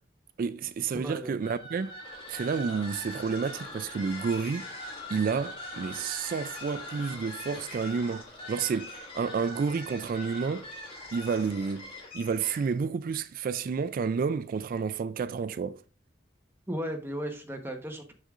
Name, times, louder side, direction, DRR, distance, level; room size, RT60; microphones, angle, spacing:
voice 1, 0.4-2.0 2.3-4.7 5.1-10.7 11.1-15.8, right 5 dB, 50° right, 0.3 m, -30 dB
voice 2, 0.9-1.3 16.7-18.1, equal, 10° right, 1.0 m, -35 dB
sound 1, 1.4-12.8, left 1 dB, 30° left, 1.7 m, -42 dB
6.5 x 6.4 x 2.4 m
head